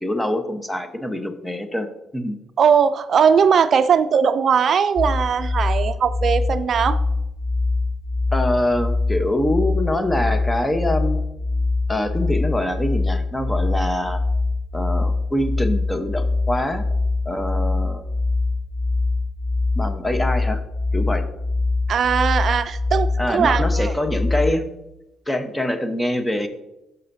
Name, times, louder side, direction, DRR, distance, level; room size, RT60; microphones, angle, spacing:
voice 1, 0.0-2.4 8.3-11.2 11.9-14.2 14.7-16.9 17.2-18.0 19.8-20.6 20.9-21.2 23.2-24.7 25.3-26.5, left 1 dB, 10° left, 7 dB, 1.0 m, -24 dB
voice 2, 2.6-7.0 21.9-23.9, right 7 dB, 55° right, 12 dB, 0.4 m, -19 dB
sound 1, 5.0-24.5, left 3 dB, 35° left, 0.6 m, -23 dB
13.0 x 5.6 x 2.7 m, 0.92 s
cardioid pair, 90°, 0 cm